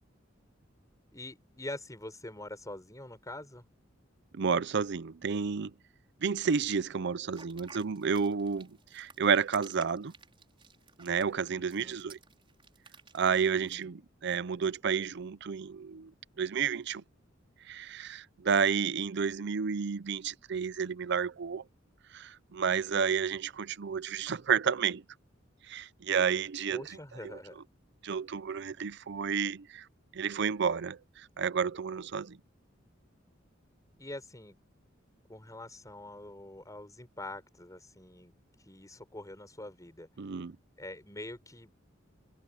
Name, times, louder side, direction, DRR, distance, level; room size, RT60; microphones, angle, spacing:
voice 1, 1.1-3.6 11.5-12.0 13.6-13.9 26.7-27.6 34.0-34.6 35.3-38.3 38.6-40.1 40.8-41.7, left 1 dB, 20° left, 5.7 m, -45 dB
voice 2, 4.3-5.7 6.2-10.1 11.0-12.2 13.1-16.1 16.4-17.0 17.7-21.6 22.1-25.0 25.7-26.8 28.0-29.9 30.1-32.4 40.2-40.5, right 6 dB, 60° right, 0.5 m, -31 dB
sound 1, 7.3-13.8, right 5 dB, 25° right, 4.7 m, -54 dB
open air
head